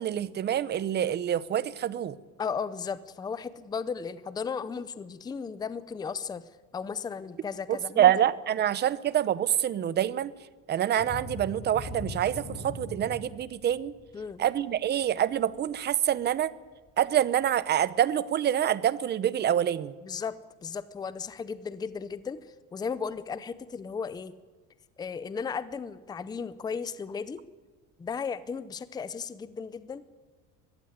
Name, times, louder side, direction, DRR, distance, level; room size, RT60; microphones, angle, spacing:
voice 1, 0.0-2.2 7.7-10.3 10.7-13.9 14.4-16.5 17.0-19.9, right 10 dB, 30° right, 18 dB, 0.7 m, -26 dB
voice 2, 2.4-6.4 6.7-8.1 14.1-14.4 20.0-20.4 20.6-22.4 22.7-24.3 25.0-27.4 28.0-30.0, left 6 dB, 10° left, 15 dB, 0.6 m, -35 dB
sound 1, 10.9-16.4 16.8-17.0 17.5-17.6, left 2 dB, 35° left, 6.8 m, -41 dB
22.0 x 15.0 x 9.4 m, 1.4 s
cardioid pair, 160°, 35 cm